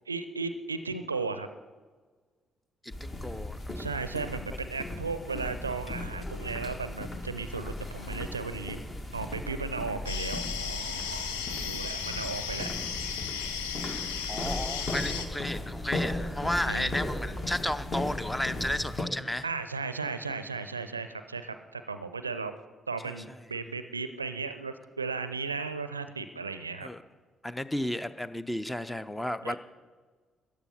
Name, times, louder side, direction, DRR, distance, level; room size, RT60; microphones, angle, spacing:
voice 1, 0.1-1.5 3.8-8.9 9.1-12.7 16.7-16.9 19.4-22.6 22.9-26.9 29.4-29.6, right 4 dB, 85° right, 11 dB, 0.4 m, -35 dB
voice 2, 2.8-3.9 14.3-19.5 23.1-23.2 26.8-27.0 27.4-29.6, left 1 dB, 10° left, 14 dB, 0.6 m, -33 dB
sound 1, 2.9-19.0, left 1 dB, 35° left, 1.8 m, -37 dB
sound 2, 10.1-15.3, left 7 dB, 70° left, 0.8 m, -35 dB
14.0 x 9.8 x 5.6 m, 1.4 s
figure-of-eight pair, 45°, 0 cm